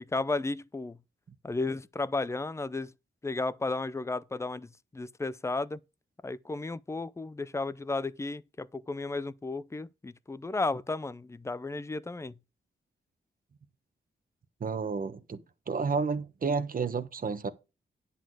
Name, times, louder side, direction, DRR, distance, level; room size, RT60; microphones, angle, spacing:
voice 1, 0.1-1.0 1.4-2.9 3.2-5.8 6.2-12.3, left 3 dB, 15° left, 0.5 m, -33 dB
voice 2, 14.6-17.5, right 5 dB, 45° right, 1.1 m, -31 dB
10.5 x 4.2 x 6.3 m
wide cardioid pair, 120°, 20 cm